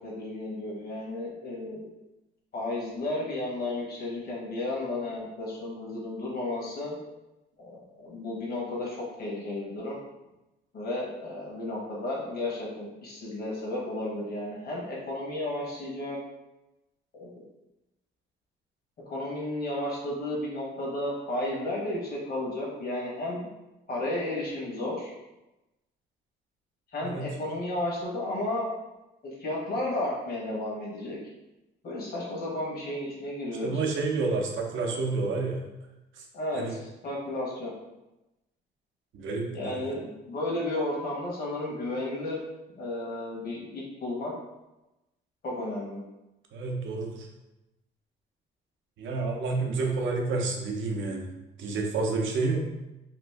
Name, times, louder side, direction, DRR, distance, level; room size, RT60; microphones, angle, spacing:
voice 1, 0.0-1.9 2.5-6.9 7.6-10.0 10.7-16.2 17.1-17.3 19.1-23.5 23.9-25.1 26.9-28.7 29.2-31.2 31.8-33.8 36.3-37.7 39.5-42.4 42.8-44.3 45.4-46.0, left 1 dB, 50° left, -4 dB, 1.1 m, -33 dB
voice 2, 33.6-35.6 36.2-36.3 36.6-36.8 39.1-39.8 46.5-47.3 49.0-51.3 51.6-52.6, right 3 dB, 75° right, 1 dB, 0.7 m, -29 dB
3.0 x 2.5 x 3.4 m, 0.99 s
cardioid pair, 90°, 20 cm